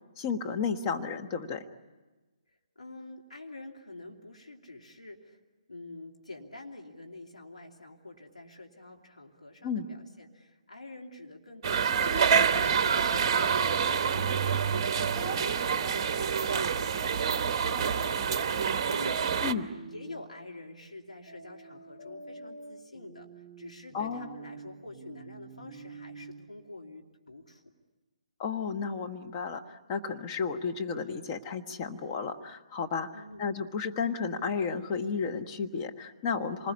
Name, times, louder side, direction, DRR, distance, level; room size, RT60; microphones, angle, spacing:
voice 1, 0.2-1.6 9.6-9.9 19.4-19.7 23.9-24.3 28.4-33.1 33.4-36.7, left 5 dB, 30° left, 5 dB, 1.4 m, -32 dB
voice 2, 2.8-5.4 5.7-19.4 19.9-23.3 23.6-27.6 33.1-33.5, left 2 dB, 75° left, 1 dB, 2.9 m, -47 dB
sound 1, 11.6-19.5, right 6 dB, 35° right, 1.0 m, -27 dB
sound 2, 19.3-20.2 21.3-26.3, right 3 dB, 10° left, 6.6 m, -47 dB
27.5 x 20.5 x 9.8 m, 1.2 s
figure-of-eight pair, 135°, 4 cm